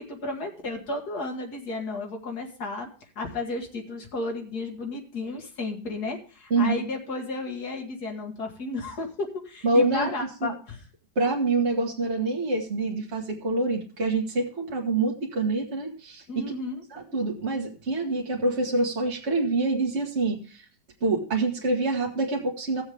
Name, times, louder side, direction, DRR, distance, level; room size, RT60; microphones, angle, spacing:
voice 1, 0.0-2.9 3.2-10.8 16.3-16.8, left 2 dB, 65° left, 2 dB, 2.3 m, -33 dB
voice 2, 9.6-10.5 11.2-16.5 16.9-20.6 21.0-22.8, right 2 dB, 40° right, -1 dB, 1.8 m, -26 dB
17.0 x 7.2 x 3.5 m, 0.39 s
omnidirectional pair, 1.8 m